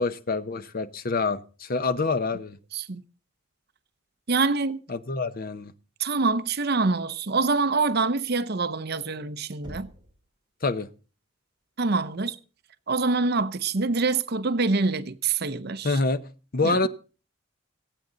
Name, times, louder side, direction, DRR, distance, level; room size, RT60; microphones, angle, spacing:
voice 1, 0.0-2.6 4.9-5.7 10.6-10.9 15.8-16.2 16.5-16.9, left 3 dB, 45° left, 0.9 m, -26 dB
voice 2, 4.3-4.8 6.0-9.9 11.8-12.4 12.9-16.0 16.6-16.9, right 3 dB, 50° right, 0.8 m, -25 dB
Knock, 9.6-10.3, equal, 20° right, 3.8 m, -43 dB
25.5 x 8.7 x 3.9 m
head